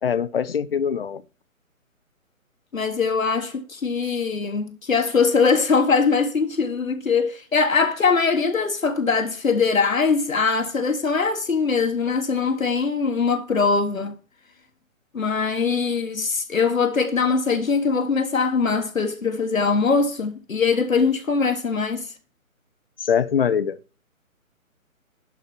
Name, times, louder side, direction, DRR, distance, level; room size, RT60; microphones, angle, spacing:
voice 1, 0.0-1.2 23.0-23.8, left 7 dB, 45° left, 0.8 m, -22 dB
voice 2, 2.7-14.1 15.1-22.1, left 5 dB, 70° left, 1.5 m, -22 dB
11.5 x 5.0 x 7.1 m
figure-of-eight pair, 140°, 42 cm